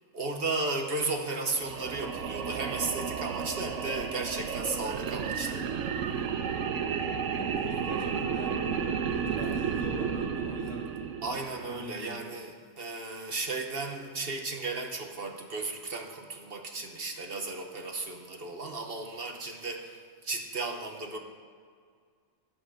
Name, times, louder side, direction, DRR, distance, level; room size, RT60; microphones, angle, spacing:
voice 1, 0.1-5.7 11.2-21.2, right 3 dB, 50° right, 4 dB, 1.2 m, -35 dB
sound 1, 1.5-11.8, right 7 dB, 80° right, 1.1 m, -32 dB
voice 2, 7.2-10.9 11.7-12.3, left 1 dB, 75° left, -2 dB, 2.5 m, -43 dB
12.0 x 11.0 x 4.9 m, 2.1 s
omnidirectional pair, 1.3 m